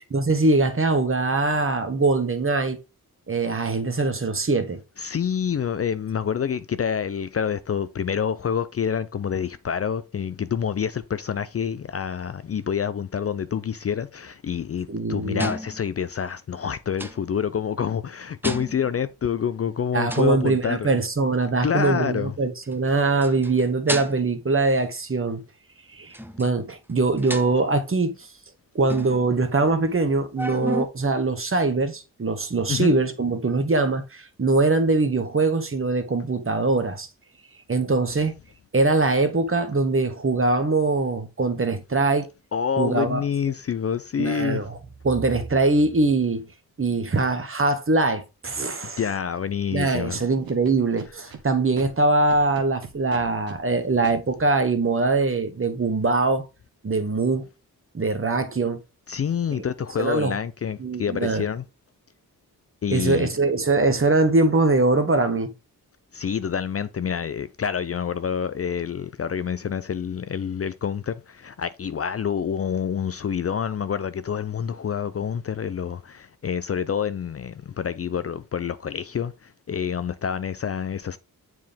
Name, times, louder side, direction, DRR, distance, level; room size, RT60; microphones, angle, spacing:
voice 1, 0.1-2.8 3.3-4.8 14.9-15.5 19.9-25.4 25.9-28.2 28.7-37.1 37.7-38.3 38.7-42.3 42.8-43.2 44.2-44.8 45.0-46.5 46.8-49.0 49.7-56.5 56.8-57.5 57.9-58.8 59.5-59.7 60.0-60.4 60.8-61.4 62.9-65.5, right 3 dB, 35° right, 1.4 m, -22 dB
voice 2, 5.0-20.9 21.6-22.3 32.7-32.9 42.5-44.6 48.8-50.2 59.1-61.6 62.8-63.3 66.1-81.2, left 7 dB, 40° left, 0.5 m, -27 dB
sound 1, 15.4-15.9 17.0-17.2 18.4-19.0 20.1-20.4 20.8-20.9 21.8-21.9 22.6-22.7 23.1-24.4 26.1-26.5 26.9-27.0 27.2-27.7 28.9-30.0 30.4-30.9, equal, 5° right, 0.8 m, -32 dB
Scratching (performance technique), 50.1-51.4 51.7-51.9 52.3-53.6 54.0-54.1, right 7 dB, 70° right, 1.4 m, -40 dB
7.3 x 4.6 x 3.5 m
cardioid pair, 55°, 37 cm